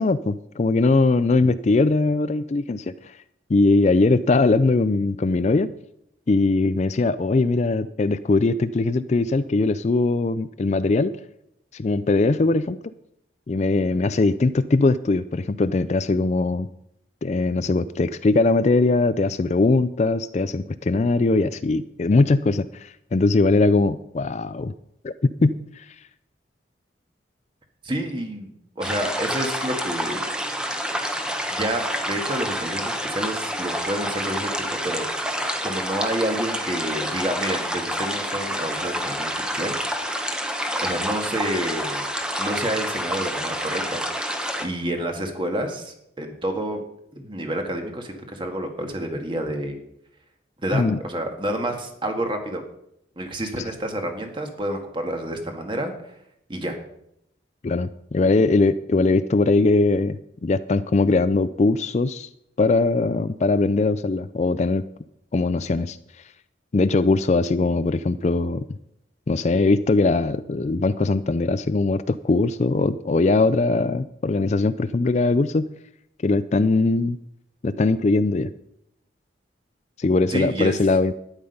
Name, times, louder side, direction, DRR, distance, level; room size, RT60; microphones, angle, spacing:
voice 1, 0.0-3.1 3.5-5.7 6.3-11.2 11.7-12.8 13.5-16.7 17.2-24.7 25.0-25.9 50.7-51.0 53.6-53.7 57.6-62.3 62.6-64.9 65.3-66.0 66.7-68.6 69.3-75.7 76.2-77.2 77.6-78.5 80.0-81.1, left 3 dB, 35° left, 13 dB, 0.4 m, -21 dB
voice 2, 27.8-30.3 31.5-35.1 35.6-39.3 39.5-39.7 40.8-42.1 42.4-44.0 44.6-46.8 47.1-49.8 50.6-52.6 53.2-56.1 56.5-56.8 80.3-80.8, right 1 dB, 25° right, 4 dB, 1.7 m, -29 dB
sound 1, 28.8-44.7, equal, 5° right, 1.1 m, -28 dB
12.0 x 9.8 x 5.4 m, 0.78 s
head